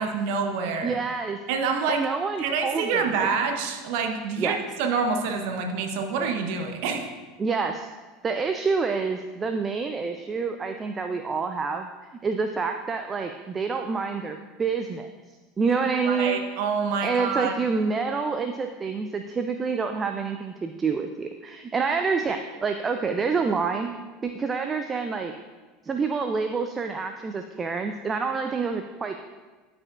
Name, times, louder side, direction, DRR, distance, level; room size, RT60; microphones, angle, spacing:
voice 1, 0.0-1.0 1.5-2.0 2.4-7.1 16.0-17.6, right 5 dB, 60° right, 4 dB, 0.8 m, -27 dB
voice 2, 0.8-1.4 1.9-3.0 4.4-4.6 7.4-7.9 8.2-11.9 12.2-15.1 15.6-16.4 17.0-23.9 24.2-25.3 25.8-29.2, right 5 dB, 25° right, 6 dB, 0.4 m, -27 dB
12.5 x 5.0 x 2.4 m, 1.3 s
hypercardioid pair, 80°, 0 cm